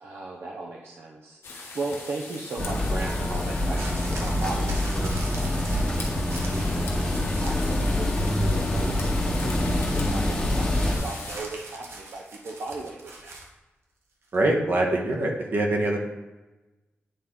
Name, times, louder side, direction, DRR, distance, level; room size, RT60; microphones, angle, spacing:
voice 1, 0.0-13.3, right 3 dB, 70° right, -1 dB, 0.7 m, -37 dB
sound 1, 1.4-11.4, left 3 dB, 80° left, 1.3 m, -39 dB
sound 2, 2.6-11.0, left 1 dB, 15° left, 1.0 m, -26 dB
sound 3, 3.8-7.8 8.1-8.7 10.8-13.5 14.3-14.4, right 2 dB, 90° right, 1.2 m, -39 dB
voice 2, 14.3-16.1, right 1 dB, 55° right, 1 dB, 1.2 m, -24 dB
9.0 x 4.4 x 3.7 m, 1.1 s
wide cardioid pair, 165°, 4 cm